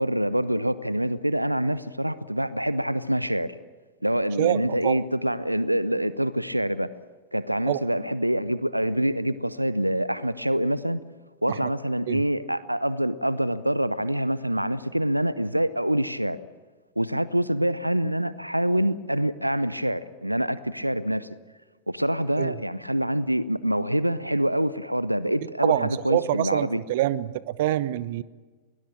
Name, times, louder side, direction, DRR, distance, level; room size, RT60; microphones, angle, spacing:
voice 1, 0.0-3.6 4.0-6.9 7.3-11.0 11.4-16.4 17.0-21.3 21.9-26.8, equal, 90° right, 17 dB, 0.7 m, -25 dB
voice 2, 4.4-5.0 7.7-7.8 11.5-11.7 12.1-12.2 22.4-22.5 25.6-28.2, right 14 dB, 55° right, 19 dB, 0.7 m, -26 dB
21.5 x 20.0 x 8.6 m, 1.4 s
figure-of-eight pair, 90°, 0 cm